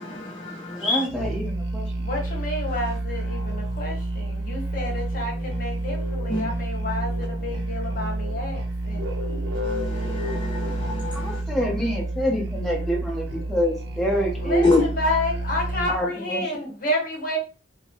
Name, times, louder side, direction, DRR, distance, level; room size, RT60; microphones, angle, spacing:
voice 1, 0.0-1.0 6.3-6.4 9.7-11.4 14.6-14.8, left 2 dB, 25° left, 0.4 m, -25 dB
voice 2, 0.7-1.8 11.1-14.7 15.9-16.7, equal, ahead, 0.8 m, -27 dB
Musical instrument, 1.1-16.1, right 1 dB, 65° right, 0.6 m, -29 dB
voice 3, 2.0-9.0 14.4-17.4, left 1 dB, 45° left, 1.1 m, -30 dB
4.0 x 2.0 x 3.0 m
head